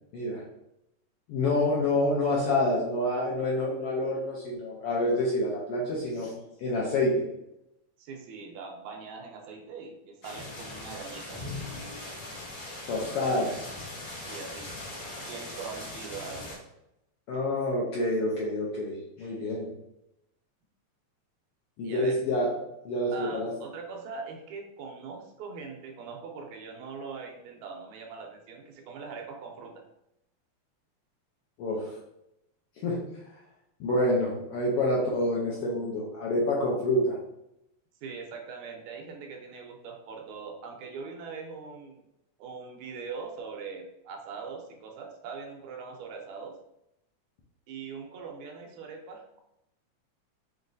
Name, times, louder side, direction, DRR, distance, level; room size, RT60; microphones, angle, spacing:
voice 1, 1.3-6.3 6.6-7.3 12.9-13.8 17.3-19.7 21.8-23.5 31.6-31.9 32.8-33.0 33.8-37.2, left 1 dB, 75° left, -4 dB, 1.4 m, -27 dB
voice 2, 8.0-11.4 14.3-14.7 15.0-16.6 21.8-22.2 23.1-29.8 38.0-42.0 42.4-46.5 47.7-49.4, right 5 dB, 80° right, 2 dB, 2.0 m, -41 dB
sound 1, 10.2-16.6, left 2 dB, 50° left, 1.9 m, -40 dB
5.8 x 3.0 x 2.6 m, 0.85 s
omnidirectional pair, 3.4 m